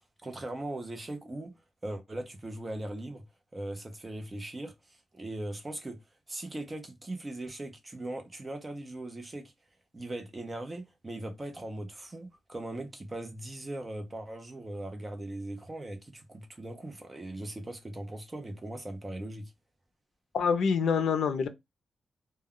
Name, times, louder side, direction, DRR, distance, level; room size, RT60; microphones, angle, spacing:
voice 1, 0.2-1.5 1.8-3.2 3.5-6.0 6.3-9.5 9.9-19.5, right 1 dB, 20° right, 0.6 m, -39 dB
voice 2, 20.3-21.5, left 6 dB, 70° left, 0.5 m, -26 dB
2.3 x 2.2 x 3.5 m
wide cardioid pair, 180°, 0 cm